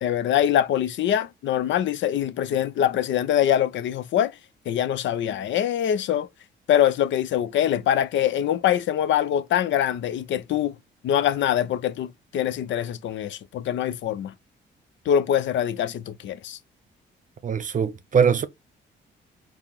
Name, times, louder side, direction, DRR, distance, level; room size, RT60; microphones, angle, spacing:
voice 1, 0.0-4.4 4.7-6.3 6.7-10.8 11.0-14.3 15.1-16.6, left 10 dB, 70° left, 0.6 m, -24 dB
voice 2, 17.4-18.5, right 6 dB, 40° right, 0.7 m, -21 dB
4.6 x 2.1 x 3.5 m
cardioid pair, 90°, 20 cm